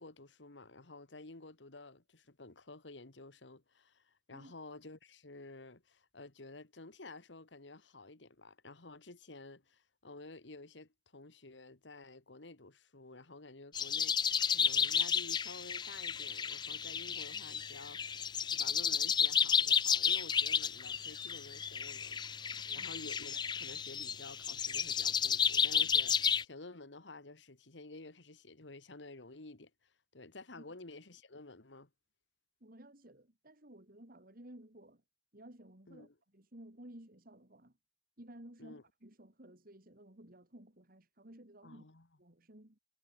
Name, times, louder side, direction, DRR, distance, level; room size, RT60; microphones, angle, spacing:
voice 1, 0.0-31.9 35.9-36.1 38.6-38.8 41.6-42.1, left 2 dB, 85° left, 2.0 m, -52 dB
sound 1, 13.7-26.4, left 7 dB, 25° left, 0.4 m, -32 dB
voice 2, 32.6-35.0 35.3-37.7 38.2-41.9 42.2-42.8, right 1 dB, 55° right, 3.9 m, -55 dB
head